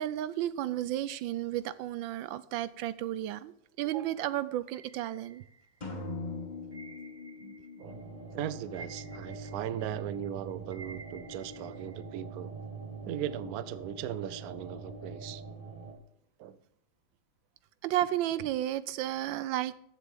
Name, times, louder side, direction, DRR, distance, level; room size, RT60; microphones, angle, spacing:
voice 1, 0.0-3.5 3.8-5.4 17.8-19.7, right 13 dB, 85° right, 16 dB, 1.3 m, -32 dB
sound 1, 4.7-6.0 6.7-8.0 8.3-12.0, right 3 dB, 35° right, 0.4 m, -52 dB
sound 2, 5.8-9.6, left 3 dB, 25° left, 1.5 m, -42 dB
voice 2, 7.4-8.0 8.3-12.5 13.0-15.4 16.4-16.6, right 10 dB, 65° right, 15 dB, 0.9 m, -38 dB
sound 3, 7.8-15.9, right 3 dB, 20° right, 2.3 m, -44 dB
14.5 x 7.6 x 3.6 m, 0.75 s
omnidirectional pair, 2.1 m